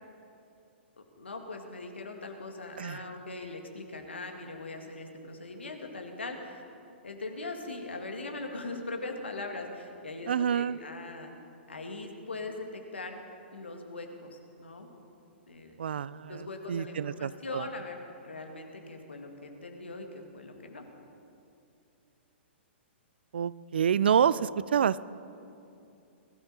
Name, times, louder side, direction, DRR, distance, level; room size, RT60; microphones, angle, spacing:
voice 1, 1.0-6.6 7.0-11.3 11.7-13.2 13.5-14.9 15.5-15.8 16.3-20.9, left 2 dB, 70° left, 4 dB, 1.9 m, -41 dB
voice 2, 10.3-10.8 15.8-17.6 23.3-25.0, right 8 dB, 60° right, 18 dB, 0.4 m, -28 dB
21.0 x 13.5 x 4.1 m, 2.7 s
figure-of-eight pair, 115°, 6 cm